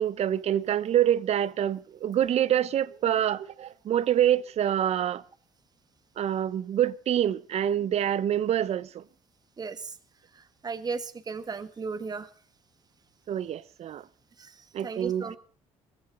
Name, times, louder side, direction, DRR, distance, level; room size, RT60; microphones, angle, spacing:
voice 1, 0.0-5.2 6.2-9.0 13.3-14.1 14.7-15.4, right 10 dB, 55° right, 0.8 m, -26 dB
voice 2, 9.6-9.9 10.4-12.3 14.4-14.5 14.8-15.4, right 4 dB, 30° right, 1.6 m, -35 dB
22.0 x 15.5 x 3.9 m
cardioid pair, 90°, 13 cm